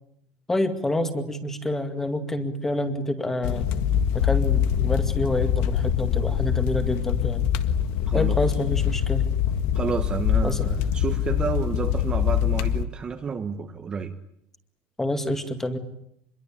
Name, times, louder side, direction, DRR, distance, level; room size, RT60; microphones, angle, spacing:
voice 1, 0.5-3.6 4.1-7.5 8.1-9.3 10.4-10.7 15.0-15.8, left 1 dB, 10° left, 2.2 m, -27 dB
sound 1, 3.4-12.8, left 9 dB, 65° left, 1.7 m, -24 dB
voice 2, 8.1-8.4 9.7-14.1, right 6 dB, 20° right, 1.3 m, -30 dB
27.0 x 22.5 x 8.7 m
cardioid pair, 170°, 5 cm